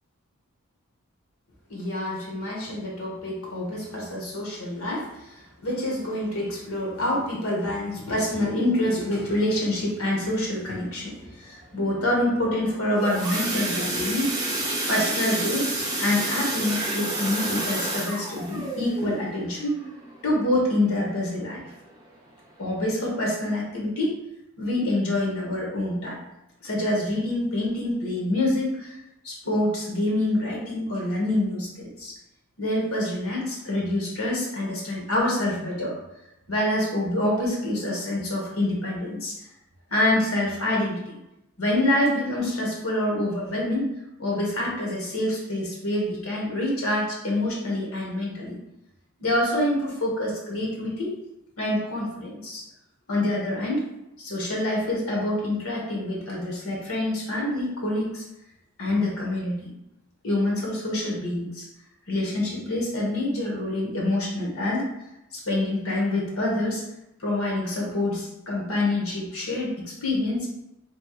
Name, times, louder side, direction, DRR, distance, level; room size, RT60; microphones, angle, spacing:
voice 1, 1.7-5.1 5.6-14.4 14.9-15.7 16.0-19.8 20.2-21.6 22.6-24.2 24.6-26.2 26.6-28.9 29.2-32.1 32.6-36.0 36.5-39.4 39.9-41.2 41.6-43.9 44.2-48.6 49.2-51.1 51.6-52.6 53.1-53.9 54.2-58.2 58.8-59.7 60.2-61.6 62.1-64.9 65.4-66.8 67.2-70.5, left 1 dB, 80° left, -3 dB, 1.5 m, -26 dB
sound 1, 12.6-21.3 21.7-22.0 22.3-22.4 22.8-22.9, right 2 dB, 15° right, 0.8 m, -30 dB
3.4 x 2.8 x 4.7 m, 0.90 s
head